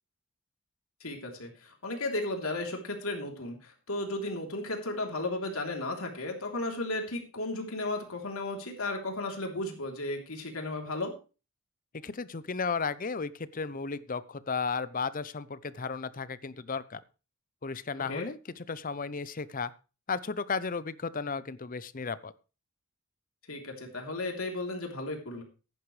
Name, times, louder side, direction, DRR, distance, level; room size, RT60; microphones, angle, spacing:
voice 1, 1.0-1.5 1.8-3.6 3.9-11.1 18.1-18.3 23.5-25.4, left 2 dB, 80° left, 2 dB, 3.4 m, -34 dB
voice 2, 12.0-17.0 17.6-19.7 20.1-22.3, left 5 dB, 40° left, 16 dB, 0.7 m, -34 dB
15.0 x 10.5 x 3.3 m, 0.32 s
head